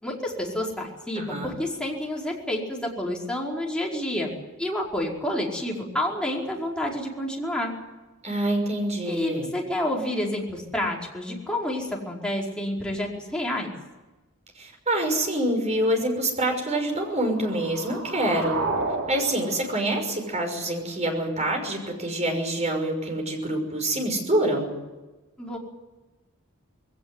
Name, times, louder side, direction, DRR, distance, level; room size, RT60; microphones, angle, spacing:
voice 1, 0.0-4.3 4.6-7.7 9.0-13.7 25.4-25.6, left 1 dB, 5° left, -2 dB, 4.9 m, -29 dB
voice 2, 1.2-1.5 8.2-9.5 14.6-18.6 19.1-24.7, right 1 dB, 35° right, 3 dB, 6.0 m, -26 dB
sound 1, 17.0-21.0, right 3 dB, 70° right, 4.0 m, -33 dB
21.0 x 17.5 x 9.8 m, 1.1 s
head